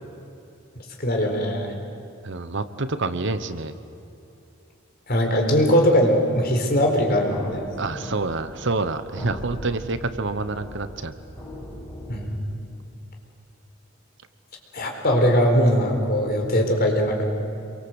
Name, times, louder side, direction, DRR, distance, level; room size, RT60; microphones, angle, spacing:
voice 1, 1.0-1.7 5.1-7.6 12.1-12.4 14.7-17.2, equal, 50° left, 2 dB, 4.4 m, -20 dB
voice 2, 2.2-3.7 7.8-11.1, right 3 dB, 60° right, 11 dB, 1.1 m, -27 dB
sound 1, 7.2-12.3, equal, 15° left, 7.4 m, -39 dB
27.0 x 23.5 x 8.1 m, 2.9 s
head